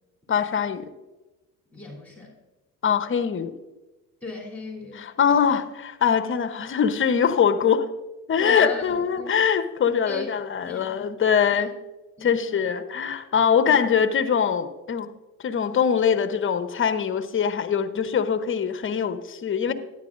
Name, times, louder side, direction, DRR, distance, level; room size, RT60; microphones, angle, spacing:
voice 1, 0.3-0.9 2.8-3.6 5.0-7.9 8.3-11.7 12.2-15.1 15.4-19.7, left 7 dB, 35° left, 0.8 m, -23 dB
voice 2, 1.7-2.3 4.2-5.1 8.4-9.3 10.1-10.3 10.6-11.1 11.5-11.6 12.2-12.7 13.3-13.8 19.7-19.8, left 2 dB, 5° left, 3.1 m, -38 dB
13.5 x 10.0 x 2.5 m
supercardioid pair, 75°, 37 cm